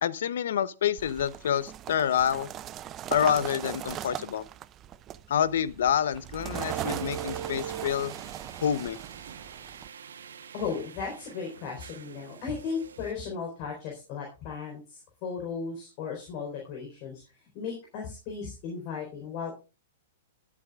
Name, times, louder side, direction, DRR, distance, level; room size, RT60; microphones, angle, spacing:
voice 1, 0.0-2.5 3.1-4.4 5.3-8.1 8.6-9.0, left 9 dB, 75° left, 0.8 m, -27 dB
sound 1, 1.0-9.9, right 11 dB, 25° right, 0.5 m, -39 dB
sound 2, 6.7-13.1, right 8 dB, 90° right, 1.1 m, -43 dB
voice 2, 10.5-17.2 17.5-19.5, left 5 dB, 45° left, 4.2 m, -36 dB
21.5 x 8.3 x 2.4 m
hypercardioid pair, 140°, 0 cm